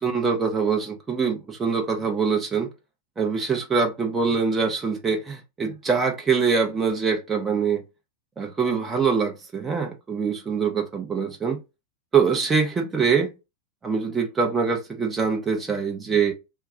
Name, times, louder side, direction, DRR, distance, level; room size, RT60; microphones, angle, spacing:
voice 1, 0.0-2.7 3.2-7.8 8.4-11.6 12.1-13.3 13.8-16.3, right 5 dB, 15° right, 0.8 m, -24 dB
2.3 x 2.1 x 3.6 m
figure-of-eight pair, 90°, 0 cm